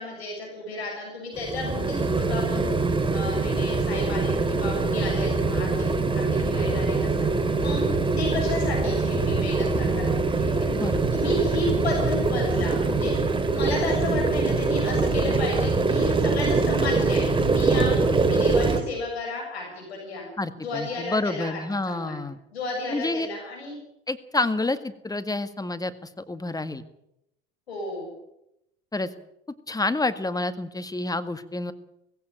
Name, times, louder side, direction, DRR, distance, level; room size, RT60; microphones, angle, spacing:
voice 1, 0.0-20.2 20.6-21.6 21.9-22.2 22.5-23.8 27.7-28.1, left 2 dB, 85° left, -1 dB, 6.9 m, -33 dB
sound 1, 1.3-18.8, right 3 dB, 15° right, 3.2 m, -23 dB
voice 2, 10.7-11.2 20.4-22.4 22.9-23.3 24.1-25.9 26.2-26.8 28.9-29.1 29.7-31.7, left 2 dB, 10° left, 11 dB, 1.8 m, -28 dB
19.0 x 16.0 x 9.0 m, 0.82 s
hypercardioid pair, 65°, 31 cm